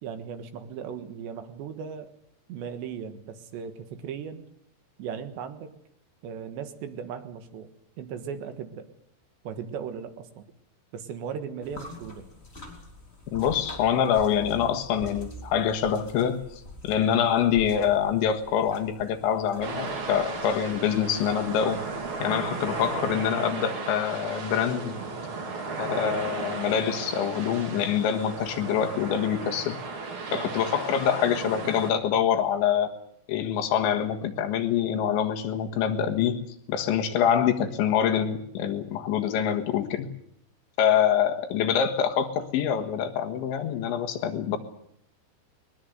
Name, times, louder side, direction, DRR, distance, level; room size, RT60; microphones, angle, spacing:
voice 1, 0.0-2.1 2.5-4.4 5.0-5.7 6.2-7.7 8.0-8.9 9.5-10.5 10.9-12.3 30.3-30.5, right 7 dB, 75° right, 9 dB, 3.7 m, -37 dB
sound 1, 11.6-23.3, equal, 15° left, 3.6 m, -46 dB
voice 2, 13.3-16.4 16.8-21.8 22.2-25.0 25.8-29.8 30.3-32.9 33.3-36.4 36.7-40.1 40.8-44.6, left 8 dB, 80° left, 4 dB, 3.9 m, -25 dB
sound 2, 19.6-31.9, right 4 dB, 40° right, 2.2 m, -35 dB
21.0 x 20.5 x 8.0 m, 0.72 s
omnidirectional pair, 5.3 m